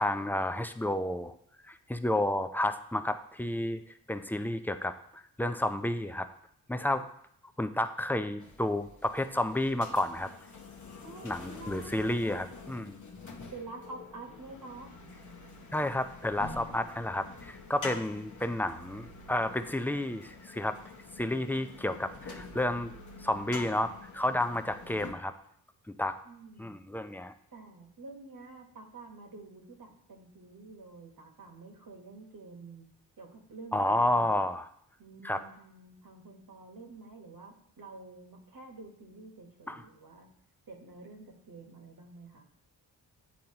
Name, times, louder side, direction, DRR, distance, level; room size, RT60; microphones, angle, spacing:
voice 1, 0.0-1.3 1.7-3.8 4.1-6.3 6.7-7.1 7.6-10.3 11.2-13.0 15.7-20.8 21.2-22.9 23.2-25.3 26.0-26.2 26.6-27.3 33.7-34.7 35.2-35.4 39.7-39.8, left 1 dB, 5° left, 9 dB, 0.4 m, -31 dB
sound 1, 8.4-25.1, left 3 dB, 45° left, 0.9 m, -47 dB
voice 2, 11.0-12.4 13.5-14.9 26.2-26.8 27.5-32.9 33.2-34.4 35.0-40.3 40.7-42.4, right 3 dB, 50° right, 2 dB, 1.3 m, -48 dB
8.5 x 3.9 x 2.9 m, 0.67 s
cardioid pair, 40°, 42 cm